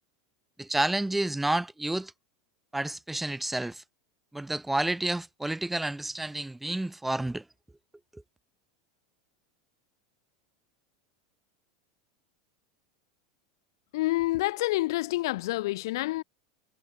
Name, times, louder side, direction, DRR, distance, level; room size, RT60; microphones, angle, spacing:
voice 1, 0.6-2.1 2.7-3.8 4.3-7.4 8.1-8.2, right 1 dB, 5° right, 2.7 m, -30 dB
voice 2, 13.9-16.2, left 18 dB, 70° left, 0.4 m, -28 dB
hypercardioid pair, 110°, 2 cm